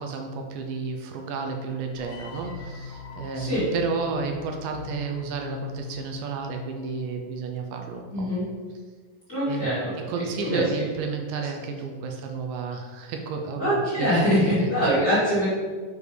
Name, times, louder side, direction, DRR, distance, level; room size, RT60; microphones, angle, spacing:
voice 1, 0.0-8.3 9.5-9.7 10.1-14.5, right 4 dB, 85° right, 3 dB, 2.2 m, -32 dB
sound 1, 2.0-7.1, left 4 dB, 85° left, 1.6 m, -40 dB
voice 2, 3.3-3.7 8.1-8.4 9.3-10.1 10.4-10.6 13.6-15.5, equal, 30° left, -10 dB, 1.8 m, -23 dB
7.2 x 4.7 x 3.3 m, 1.5 s
omnidirectional pair, 3.9 m